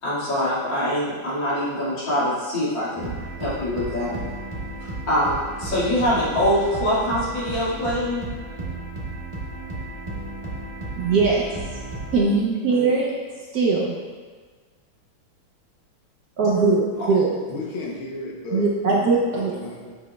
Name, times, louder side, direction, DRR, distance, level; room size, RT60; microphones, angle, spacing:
voice 1, 0.0-3.1 3.4-4.1 4.8-8.3, equal, 65° left, -9 dB, 2.9 m, -24 dB
sound 1, 3.0-12.2, right 2 dB, 25° right, 0.8 m, -34 dB
voice 2, 11.0-11.4 12.1-13.1 13.5-14.0 16.4-17.3 18.5-19.6, right 4 dB, 65° right, -3 dB, 1.0 m, -20 dB
voice 3, 17.5-18.7 19.3-19.9, left 2 dB, 80° left, -1 dB, 1.7 m, -34 dB
8.3 x 6.1 x 2.3 m, 1.4 s
omnidirectional pair, 2.2 m